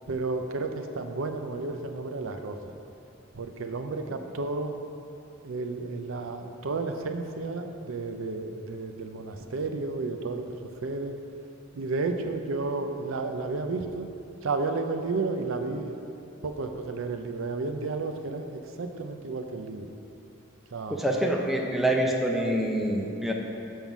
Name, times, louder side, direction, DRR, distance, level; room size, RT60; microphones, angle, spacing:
voice 1, 0.1-2.6 3.3-4.7 5.4-10.5 10.8-11.2 11.7-14.1 14.4-16.0 16.4-19.9 20.7-21.0, right 3 dB, 75° right, 6 dB, 0.5 m, -32 dB
voice 2, 20.9-23.3, right 1 dB, ahead, 0 dB, 0.6 m, -26 dB
7.2 x 5.5 x 6.0 m, 2.7 s
head